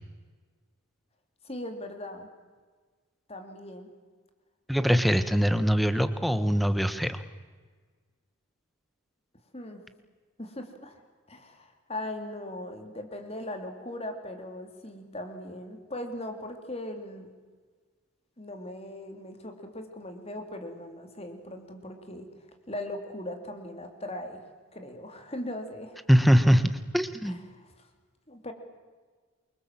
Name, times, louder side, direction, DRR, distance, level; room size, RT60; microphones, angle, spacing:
voice 1, 1.4-2.3 3.3-3.9 9.5-9.8 10.4-11.0 11.3-17.3 18.4-24.4 24.7-26.0 27.2-27.9 28.3-28.5, left 1 dB, 30° left, 5 dB, 3.1 m, -39 dB
voice 2, 4.7-7.2 26.1-27.4, equal, ahead, 11 dB, 1.3 m, -22 dB
28.0 x 24.5 x 7.6 m, 1.5 s
head